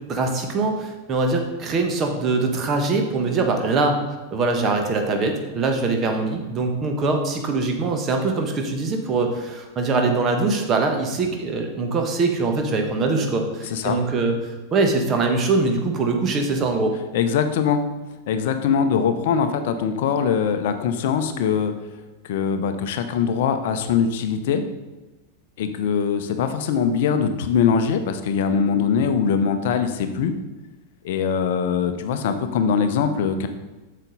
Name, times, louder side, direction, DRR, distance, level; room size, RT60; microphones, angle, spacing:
voice 1, 0.1-4.0 4.3-14.3 14.7-16.9, right 3 dB, 30° right, 4 dB, 1.3 m, -22 dB
voice 2, 13.6-14.0 17.1-17.8 18.3-21.7 22.2-24.6 25.6-30.3 31.0-33.5, left 7 dB, 55° left, 8 dB, 0.7 m, -22 dB
8.1 x 6.6 x 4.0 m, 1.1 s
figure-of-eight pair, 90°, 0 cm